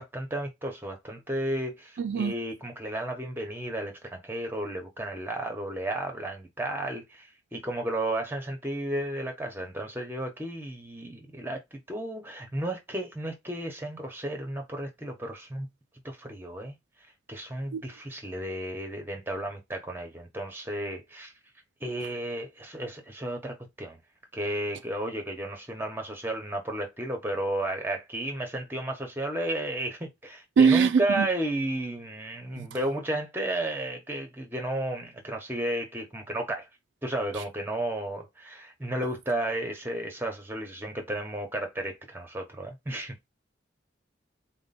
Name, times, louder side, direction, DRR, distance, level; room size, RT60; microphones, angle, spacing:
voice 1, 0.0-15.7 16.0-16.8 17.3-21.3 21.8-24.0 24.3-36.7 37.0-43.3, right 1 dB, 10° right, 1.0 m, -33 dB
voice 2, 30.6-30.9 31.2-31.3 32.6-32.7, right 6 dB, 80° right, 0.4 m, -21 dB
4.4 x 2.2 x 4.2 m
head